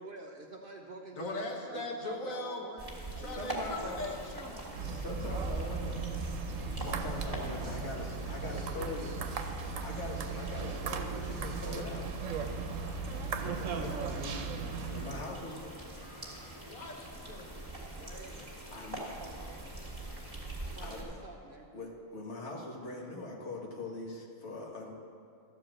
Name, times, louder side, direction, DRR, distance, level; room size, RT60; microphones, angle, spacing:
voice 1, 0.0-2.9 3.1-4.0 8.4-9.1 13.6-14.6 17.9-18.5 19.0-19.6 20.7-21.7, right 3 dB, 50° right, 2 dB, 0.7 m, -49 dB
voice 2, 1.2-2.7 3.2-4.6 16.5-18.5, left 2 dB, 75° left, 0 dB, 1.6 m, -40 dB
sound 1, 2.8-21.0, right 2 dB, 15° right, 1.8 m, -43 dB
voice 3, 3.3-4.2 4.9-6.0 6.8-9.1 9.8-12.1 13.7-14.0 14.9-15.8 16.2-16.4 18.7-19.2 20.1-20.2 20.8-21.2 21.7-24.9, left 2 dB, 55° left, -1 dB, 1.7 m, -42 dB
sound 2, 4.7-15.2, right 4 dB, 75° right, 1.1 m, -37 dB
12.5 x 4.9 x 7.5 m, 2.4 s
omnidirectional pair, 1.4 m